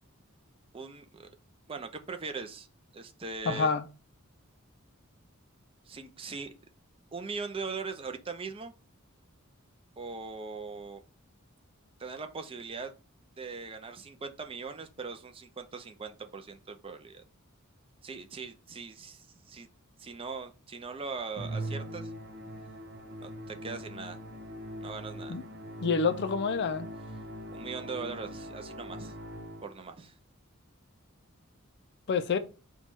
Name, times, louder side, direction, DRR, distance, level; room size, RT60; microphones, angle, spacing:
voice 1, 0.7-1.3 1.7-2.7 2.9-3.7 5.9-6.5 7.1-8.7 10.0-11.0 12.0-12.9 13.4-17.2 18.0-19.7 20.0-22.1 23.2-24.2 24.8-25.3 27.5-29.1 29.6-30.1, right 4 dB, 25° right, 0.5 m, -40 dB
voice 2, 3.5-3.8 25.3-25.4 25.8-26.9 32.1-32.4, left 5 dB, 55° left, 0.4 m, -27 dB
Musical instrument, 21.4-29.9, right 1 dB, 50° right, 0.9 m, -41 dB
4.4 x 2.3 x 4.2 m
head